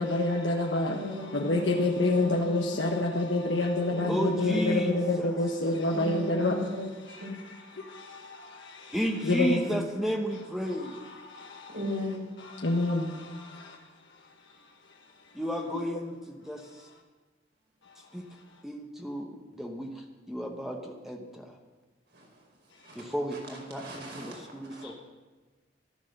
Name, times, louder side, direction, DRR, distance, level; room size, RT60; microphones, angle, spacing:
voice 1, 0.0-6.6 7.1-9.8 10.6-11.8 12.4-15.4 15.7-16.0 16.6-17.0 17.8-18.6 22.7-23.0 24.8-24.9, left 2 dB, 75° left, 1.2 m, -30 dB
voice 2, 0.9-2.8 3.9-4.9 5.9-7.4 11.7-12.3 22.1-22.5 22.8-24.8, left 1 dB, 65° right, 4.9 m, -38 dB
voice 3, 4.1-5.3 8.9-11.0 15.3-16.1 16.5-16.6 18.1-18.2 18.6-21.5 22.9-24.9, equal, ahead, 1.1 m, -33 dB
13.5 x 12.0 x 6.6 m
head